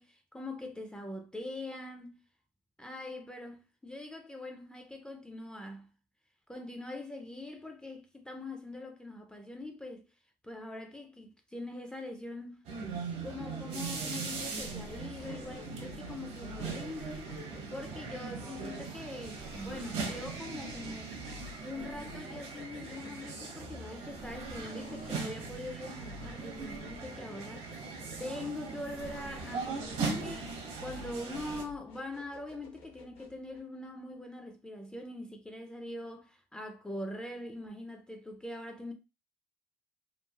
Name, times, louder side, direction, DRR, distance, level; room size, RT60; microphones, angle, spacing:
voice 1, 0.0-2.2 2.8-5.9 6.5-10.1 10.4-12.7 13.2-17.3 17.7-21.2 21.6-27.9 28.2-30.5 30.8-38.9, left 2 dB, 10° left, 0.4 m, -43 dB
sound 1, 12.7-31.6, right 4 dB, 70° right, 0.8 m, -40 dB
sound 2, 14.4-33.6, left 3 dB, 60° left, 0.8 m, -53 dB
3.1 x 2.4 x 2.3 m
cardioid pair, 130°, 11 cm